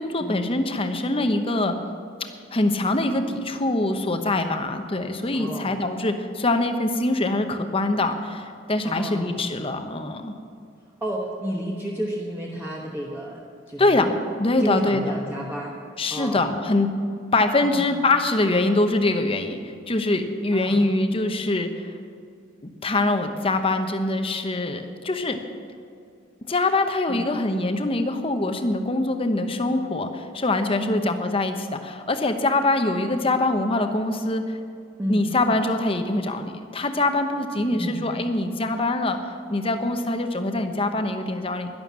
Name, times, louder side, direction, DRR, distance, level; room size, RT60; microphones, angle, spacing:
voice 1, 0.0-1.8 2.5-10.3 13.8-15.0 16.0-16.9 17.3-19.6 19.9-21.9 22.8-25.4 26.5-34.6 35.1-39.2 39.5-41.7, left 2 dB, 25° left, 7 dB, 0.9 m, -24 dB
voice 2, 5.3-5.8 8.8-9.4 11.0-13.4 13.7-14.1 14.6-16.6 17.6-17.9 20.5-20.9 27.1-27.3 30.8-31.1 35.0-35.3 37.7-38.1, equal, 10° right, -3 dB, 1.1 m, -31 dB
11.5 x 11.5 x 7.3 m, 2.5 s
head